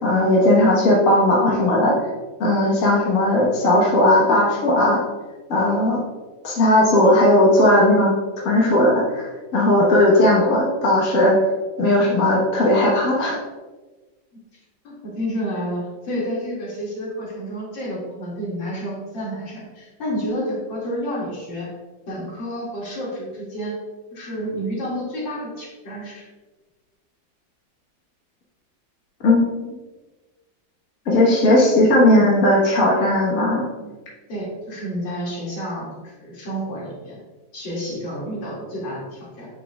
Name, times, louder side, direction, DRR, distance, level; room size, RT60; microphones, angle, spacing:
voice 1, 0.0-2.0 2.4-5.0 5.5-6.0 6.4-8.1 8.4-11.4 11.8-13.4 29.2-29.8 31.1-33.6, left 1 dB, 50° left, -4 dB, 1.6 m, -17 dB
voice 2, 14.8-21.7 22.1-23.7 24.1-26.3 33.8-33.9 34.3-37.2 37.5-39.5, equal, 80° left, -6 dB, 3.0 m, -30 dB
7.7 x 6.8 x 2.4 m, 1.2 s
omnidirectional pair, 2.1 m